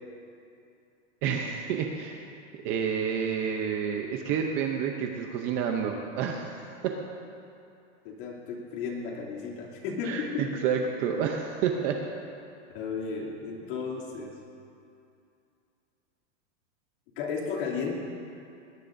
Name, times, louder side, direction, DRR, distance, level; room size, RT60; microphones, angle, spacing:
voice 1, 1.2-2.2 2.5-7.0 10.0-12.0, right 7 dB, 25° right, 3 dB, 0.6 m, -29 dB
voice 2, 8.0-10.4 12.7-14.3 17.2-17.9, left 5 dB, 45° left, -3 dB, 2.8 m, -34 dB
21.0 x 20.0 x 2.6 m, 2.6 s
supercardioid pair, 170°, 37 cm